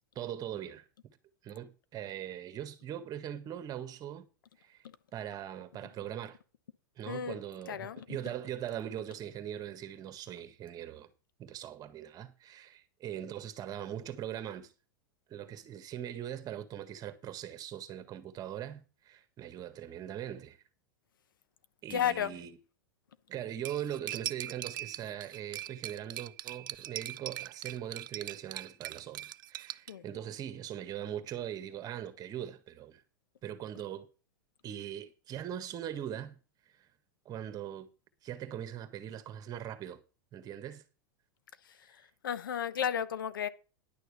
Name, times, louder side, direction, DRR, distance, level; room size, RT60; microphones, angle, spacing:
voice 1, 0.1-0.8 1.4-4.3 4.6-4.8 5.1-6.4 7.0-11.1 11.4-14.7 15.3-20.6 21.8-22.6 23.3-33.0 33.4-34.1 34.6-36.3 36.7-36.9 37.2-37.9 38.2-40.0 40.3-40.8, right 10 dB, 35° right, 1.6 m, -41 dB
voice 2, 7.1-7.4 7.7-8.2 21.9-22.4 29.9-30.0 41.6-43.5, left 9 dB, 80° left, 1.0 m, -34 dB
Cutlery silverware, 23.6-29.9, right 14 dB, 75° right, 0.5 m, -41 dB
10.5 x 6.6 x 6.7 m
hypercardioid pair, 105°, 11 cm